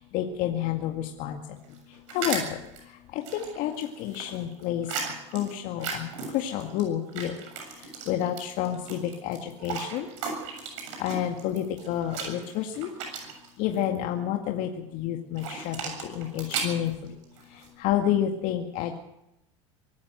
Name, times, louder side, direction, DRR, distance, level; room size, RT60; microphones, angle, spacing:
voice 1, 0.1-1.4 2.1-2.4 3.1-4.9 5.3-7.3 8.1-10.1 11.0-12.9 13.6-15.8 16.2-16.9 17.8-19.0, left 11 dB, 60° left, 4 dB, 1.9 m, -29 dB
sound 1, 1.6-2.8 3.2-6.8 7.1-14.0 15.4-17.7, right 6 dB, 75° right, 7.3 m, -36 dB
24.0 x 14.0 x 7.9 m, 0.87 s
hypercardioid pair, 90°, 16 cm